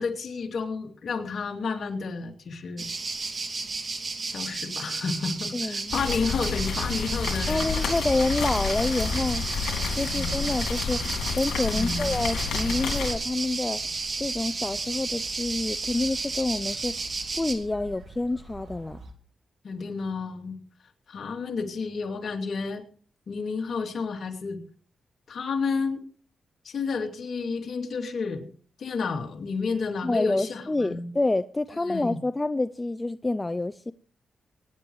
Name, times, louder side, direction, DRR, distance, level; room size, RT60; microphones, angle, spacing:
voice 1, 0.0-2.9 4.2-7.9 10.1-10.5 11.7-12.1 19.6-20.6 21.1-22.8 23.3-24.6 25.3-26.0 26.6-28.5 28.8-31.1 31.8-32.2, left 4 dB, 65° left, 2.5 m, -31 dB
sound 1, 2.8-17.5, right 3 dB, 45° right, 2.5 m, -33 dB
voice 2, 5.5-5.9 7.5-9.4 9.9-11.0 11.4-13.8 14.2-16.9 17.4-19.0 30.0-33.9, left 2 dB, 20° left, 0.5 m, -28 dB
sound 2, 5.9-13.1, left 5 dB, 90° left, 2.6 m, -30 dB
sound 3, 11.9-19.1, right 3 dB, 70° right, 1.8 m, -47 dB
23.5 x 10.0 x 3.1 m
cardioid pair, 75°, 0 cm